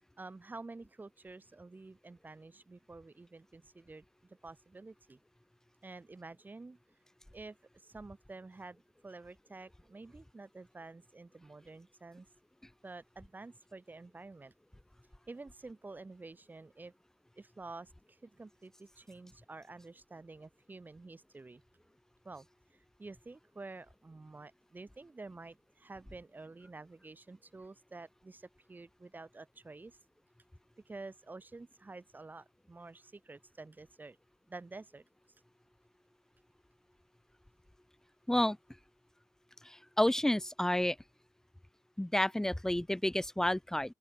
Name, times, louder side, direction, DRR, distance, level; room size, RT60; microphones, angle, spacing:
voice 1, 0.2-5.2 5.8-6.8 7.3-12.3 12.8-14.5 15.3-16.9 17.4-21.6 22.2-30.0 30.9-34.2 34.5-35.0, right 3 dB, 20° right, 6.9 m, -50 dB
voice 2, 39.6-41.0 42.0-43.9, left 1 dB, 5° left, 1.8 m, -30 dB
open air
wide cardioid pair, 145°, 8 cm